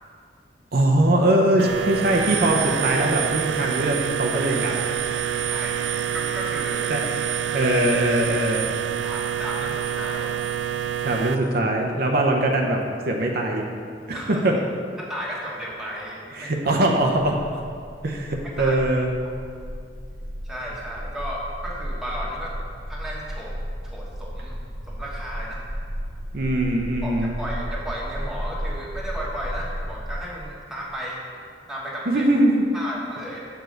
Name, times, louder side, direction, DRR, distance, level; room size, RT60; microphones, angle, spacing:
voice 1, 0.7-4.8 6.9-7.0 7.5-8.7 11.0-13.6 14.1-14.6 16.3-17.4 18.0-19.1 26.3-27.4 32.1-32.6, right 1 dB, 60° right, 1 dB, 0.7 m, -21 dB
sound 1, 1.6-11.4, right 9 dB, 90° right, 0.4 m, -27 dB
voice 2, 5.5-6.9 9.0-10.3 14.1-14.4 15.1-16.5 18.4-18.8 20.4-22.6 22.9-23.6 23.8-24.6 24.9-25.6 27.0-31.2 31.7-32.3 32.7-33.4, equal, 5° right, -5 dB, 1.3 m, -34 dB
sound 2, 17.3-30.2, equal, 25° right, 0.6 m, -34 dB
7.0 x 4.7 x 6.4 m, 2.2 s
head